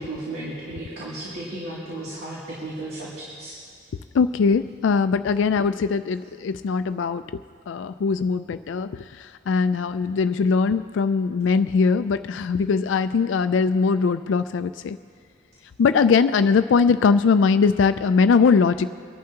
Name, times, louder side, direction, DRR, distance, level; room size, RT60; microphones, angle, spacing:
voice 1, 0.0-3.5, right 1 dB, 55° right, -7 dB, 2.6 m, -34 dB
voice 2, 4.1-7.2 7.7-15.0 15.8-18.9, left 5 dB, 70° left, 10 dB, 0.3 m, -21 dB
24.5 x 11.0 x 2.9 m, 2.1 s
head